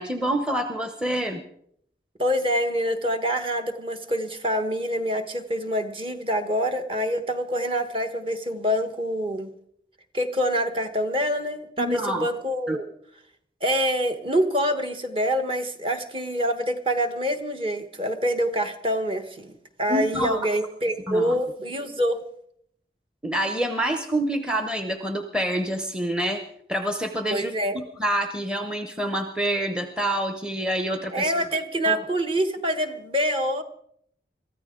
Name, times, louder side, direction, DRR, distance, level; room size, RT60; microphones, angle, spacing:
voice 1, 0.0-1.4 11.8-12.3 12.7-12.8 19.9-20.5 21.1-21.4 23.2-26.4 26.7-31.3 31.9-32.0, right 1 dB, 5° right, 7 dB, 0.8 m, -27 dB
voice 2, 2.2-9.5 10.1-12.8 13.6-22.2 27.3-27.8 31.1-33.6, equal, 30° right, 7 dB, 1.2 m, -26 dB
23.0 x 14.0 x 3.7 m, 0.69 s
head